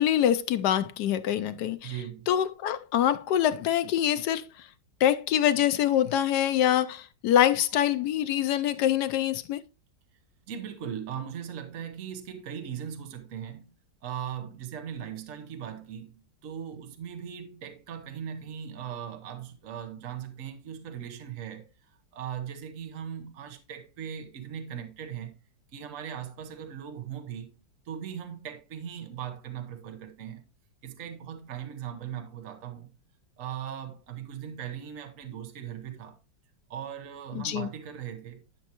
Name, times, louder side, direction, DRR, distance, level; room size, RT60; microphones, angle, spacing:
voice 1, 0.0-1.9 2.3-4.7 5.0-9.6 37.3-37.7, left 11 dB, 70° left, 1.1 m, -25 dB
voice 2, 1.8-2.3 10.5-13.7 14.0-21.7 22.1-25.4 25.7-27.5 27.8-30.4 30.8-32.9 33.4-36.2 36.7-38.4, right 9 dB, 50° right, 1.3 m, -39 dB
10.5 x 6.3 x 2.9 m
omnidirectional pair, 1.9 m